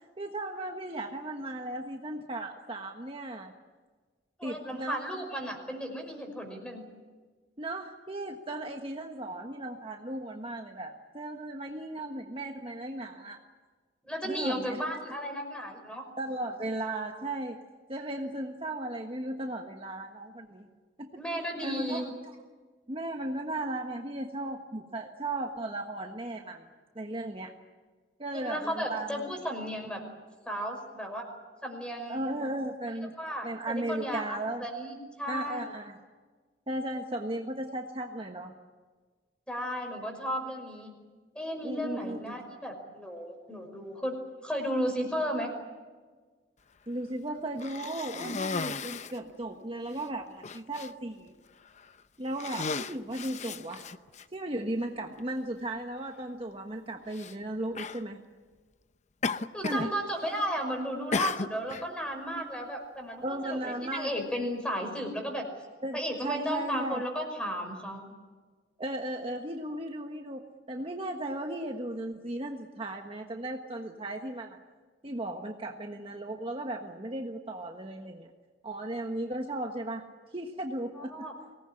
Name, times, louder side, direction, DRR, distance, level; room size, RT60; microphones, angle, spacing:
voice 1, 0.2-3.5 4.4-5.0 7.6-13.4 14.2-14.8 16.2-17.6 17.9-20.7 21.0-21.1 21.6-22.1 22.9-26.7 26.9-27.5 28.2-29.2 32.1-33.1 33.4-34.6 35.3-36.0 36.7-38.5 41.6-42.3 46.9-51.3 52.2-53.8 54.3-58.2 59.6-59.9 63.2-64.1 65.8-66.0 66.2-67.0 68.8-74.6 75.0-78.3 78.6-80.0 80.3-81.3, right 1 dB, 30° right, 3 dB, 1.4 m, -36 dB
voice 2, 4.4-6.9 14.1-16.1 21.1-22.0 28.3-30.0 30.5-31.3 31.6-32.2 33.2-35.7 39.5-40.9 41.3-45.5 59.5-65.5 65.9-68.1 81.0-81.3, equal, 5° left, 4 dB, 5.5 m, -34 dB
Cough, 47.6-49.2 49.9-50.0 50.4-50.9 51.7-51.9 52.3-54.2 55.2-55.3 57.1-57.3 57.7-58.0 59.2-59.9 60.2-60.6 61.1-61.9, left 4 dB, 40° left, 0.7 m, -34 dB
24.5 x 19.0 x 9.9 m, 1.4 s
head